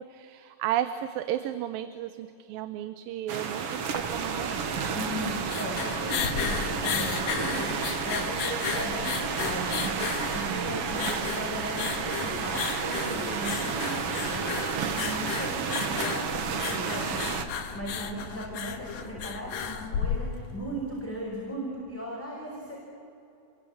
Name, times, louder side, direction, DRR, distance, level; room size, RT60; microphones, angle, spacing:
voice 1, 0.0-5.0 10.5-10.8, right 12 dB, 90° right, 11 dB, 2.6 m, -34 dB
sound 1, 3.3-17.4, right 6 dB, 50° right, 2.1 m, -31 dB
sound 2, 3.9-20.1, left 2 dB, 45° left, 3.3 m, -45 dB
voice 2, 4.9-22.8, equal, 5° left, -4 dB, 5.3 m, -37 dB
sound 3, 5.2-20.6, left 8 dB, 75° left, 3.0 m, -34 dB
29.0 x 22.0 x 8.8 m, 2.8 s
omnidirectional pair, 4.0 m